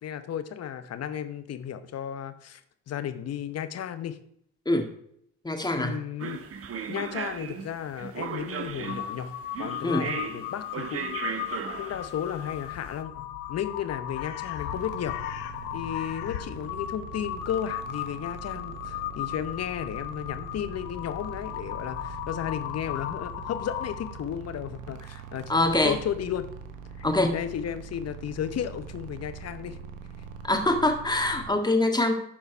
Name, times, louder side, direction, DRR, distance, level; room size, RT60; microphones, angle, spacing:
voice 1, 0.0-2.6 2.9-4.2 5.8-6.5 6.9-9.3 9.6-15.2 15.7-25.5 25.8-26.5 27.0-27.1 27.3-29.8, left 9 dB, 55° left, 11 dB, 0.9 m, -34 dB
voice 2, 5.4-6.0 9.8-10.1 25.5-26.0 27.0-27.3 30.4-32.1, left 2 dB, 15° left, 4 dB, 1.9 m, -24 dB
sound 1, 6.2-12.9, right 7 dB, 50° right, 0.9 m, -36 dB
Crow, 8.8-24.3, left 12 dB, 90° left, 0.7 m, -36 dB
sound 2, 14.7-31.5, right 6 dB, 80° right, 1.0 m, -43 dB
12.0 x 4.6 x 4.5 m, 0.70 s
hypercardioid pair, 55°, 30 cm